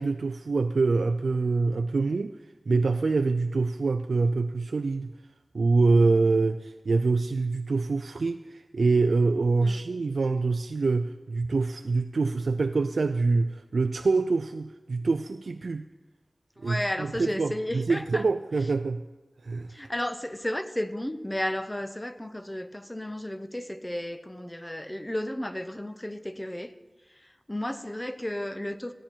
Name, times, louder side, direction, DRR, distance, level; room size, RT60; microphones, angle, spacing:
voice 1, 0.0-2.3 2.7-5.1 5.5-15.9 16.6-19.0 19.4-19.7, right 3 dB, 90° right, 8 dB, 0.3 m, -25 dB
voice 2, 16.6-18.3 19.7-26.7 27.1-28.9, left 1 dB, 15° left, 11 dB, 0.7 m, -33 dB
15.5 x 10.0 x 4.4 m, 1.2 s
wide cardioid pair, 60°, 0 cm